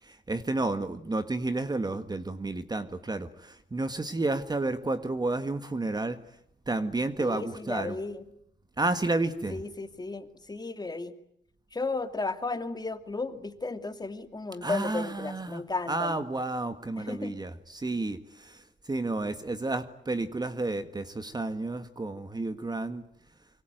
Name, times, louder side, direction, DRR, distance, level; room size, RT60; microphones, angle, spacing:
voice 1, 0.0-6.2 6.7-8.0 8.8-9.6 14.6-23.0, right 2 dB, 20° right, 10 dB, 1.7 m, -31 dB
voice 2, 7.2-8.2 9.5-11.2 11.7-16.2 17.0-17.3, left 3 dB, 20° left, 8 dB, 2.7 m, -34 dB
26.0 x 24.5 x 9.2 m, 0.74 s
cardioid pair, 90°, 20 cm